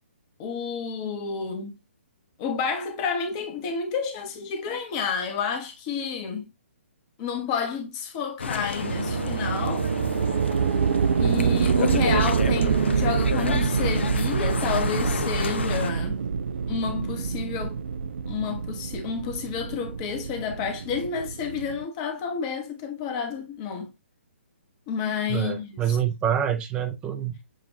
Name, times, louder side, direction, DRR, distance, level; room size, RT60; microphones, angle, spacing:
voice 1, 0.4-1.8 2.4-6.4 7.2-9.9 11.2-16.2 16.7-17.8 18.3-23.9 24.9-26.0, left 6 dB, 25° left, 1.0 m, -30 dB
sound 1, 8.4-15.9, left 5 dB, 60° left, 0.5 m, -32 dB
sound 2, 8.8-21.8, right 6 dB, 60° right, 0.4 m, -26 dB
voice 2, 25.3-27.4, right 9 dB, 15° right, 0.6 m, -26 dB
7.3 x 2.5 x 2.7 m
figure-of-eight pair, 130°, 7 cm